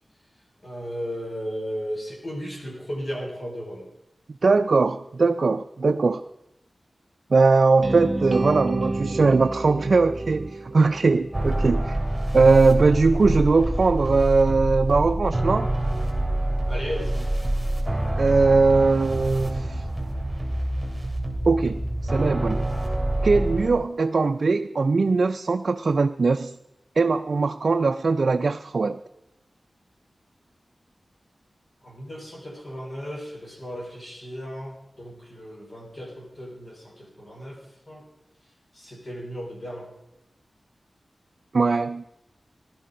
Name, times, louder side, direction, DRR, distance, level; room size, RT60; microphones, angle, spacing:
voice 1, 0.6-3.9 16.7-17.3 31.8-37.6 37.9-38.0 38.7-39.9, equal, 40° left, -1 dB, 3.6 m, -35 dB
voice 2, 4.4-6.2 7.3-12.0 12.3-15.7 18.2-19.8 21.4-21.8 22.0-22.7 23.2-26.6 27.0-29.0 41.5-42.0, right 4 dB, 60° right, 7 dB, 0.4 m, -20 dB
sound 1, 7.8-11.9, right 2 dB, 35° right, 1.1 m, -30 dB
sound 2, 11.3-23.7, right 1 dB, 15° right, 3.2 m, -26 dB
15.5 x 12.0 x 5.1 m, 0.86 s
wide cardioid pair, 110°, 0 cm